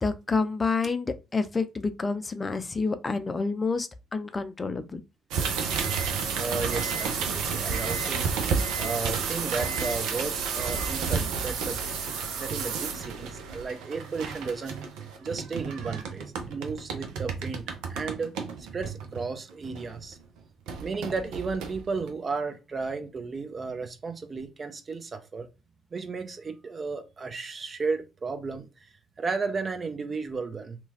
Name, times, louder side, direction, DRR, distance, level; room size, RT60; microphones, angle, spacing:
voice 1, 0.0-5.0, left 4 dB, 30° left, 0.5 m, -28 dB
sound 1, 5.3-20.1 20.7-22.1, right 6 dB, 70° right, 0.5 m, -31 dB
voice 2, 6.4-8.3 8.8-11.8 12.4-14.8 15.2-17.6 17.9-20.2 20.8-25.5 25.9-28.9 29.2-30.8, right 4 dB, 40° right, 0.7 m, -34 dB
2.9 x 2.3 x 2.8 m
hypercardioid pair, 45°, 0 cm